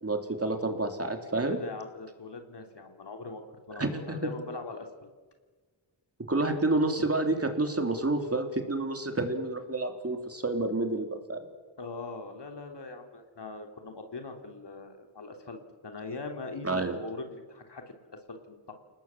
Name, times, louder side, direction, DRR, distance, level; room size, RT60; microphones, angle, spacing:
voice 1, 0.0-1.6 3.8-4.3 6.3-11.5 16.6-16.9, right 2 dB, 30° right, 5 dB, 3.5 m, -29 dB
voice 2, 1.4-5.1 11.8-18.7, left 3 dB, 55° left, 4 dB, 3.6 m, -41 dB
29.5 x 19.5 x 7.5 m, 1.4 s
wide cardioid pair, 85°, 48 cm